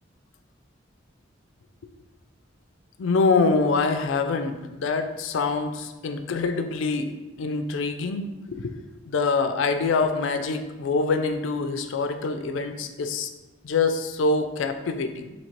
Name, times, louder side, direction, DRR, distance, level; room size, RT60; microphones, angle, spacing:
voice 1, 3.0-7.1 7.4-8.8 9.1-13.3 13.6-15.3, left 4 dB, 75° left, 7 dB, 0.4 m, -25 dB
4.3 x 2.8 x 2.9 m, 1.1 s
head